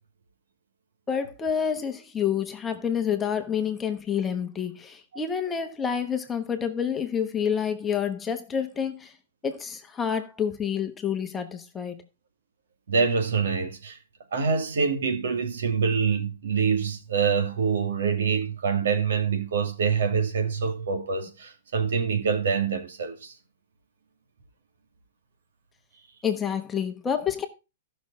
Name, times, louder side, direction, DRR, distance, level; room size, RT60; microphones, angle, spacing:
voice 1, 1.1-9.1 9.4-12.0 26.2-27.5, left 7 dB, 10° left, 1.1 m, -28 dB
voice 2, 12.9-14.0 14.3-23.3, right 5 dB, 80° right, 2.6 m, -25 dB
14.0 x 6.3 x 4.2 m
hypercardioid pair, 160°, 0 cm